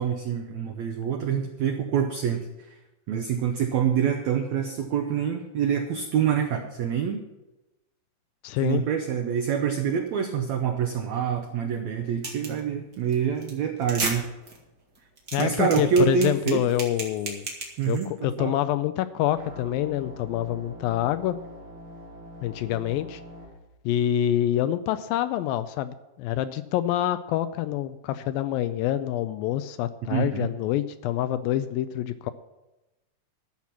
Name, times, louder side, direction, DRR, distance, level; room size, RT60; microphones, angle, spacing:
voice 1, 0.0-2.7 3.1-7.2 8.6-14.2 15.4-16.6 17.8-18.1 18.4-18.5 30.1-30.5, right 7 dB, 85° right, 5 dB, 1.5 m, -26 dB
voice 2, 8.4-8.8 15.3-17.5 17.9-21.4 22.4-23.2 23.9-32.3, left 12 dB, 80° left, 12 dB, 2.2 m, -26 dB
sound 1, 12.2-12.6 12.9-13.1 13.4-13.5 13.8-14.1 14.5-14.6 15.0-18.1, right 3 dB, 35° right, 1.7 m, -32 dB
sound 2, 19.3-23.5, equal, 70° right, 4.5 m, -44 dB
13.0 x 6.0 x 8.4 m, 1.0 s
omnidirectional pair, 4.4 m